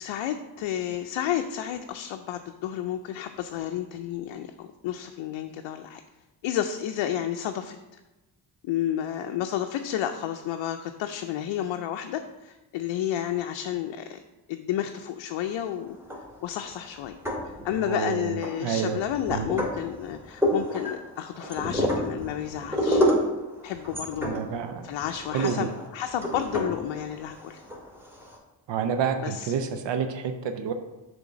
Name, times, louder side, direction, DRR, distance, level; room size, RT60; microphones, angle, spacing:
voice 1, 0.0-6.0 6.4-7.8 8.6-14.2 14.5-16.0 16.4-17.2 17.4-23.0 23.6-24.3 24.8-27.6 29.2-29.5, left 10 dB, 80° left, 6 dB, 0.6 m, -31 dB
sound 1, 15.9-16.6 17.0-18.0 18.4-28.3, equal, 5° right, 2.4 m, -29 dB
voice 2, 17.8-18.3 18.6-19.0 19.3-19.5 24.2-24.9 25.3-25.7 28.7-30.7, right 7 dB, 70° right, 7 dB, 0.7 m, -28 dB
6.8 x 3.5 x 6.2 m, 1.0 s
supercardioid pair, 45°, 45 cm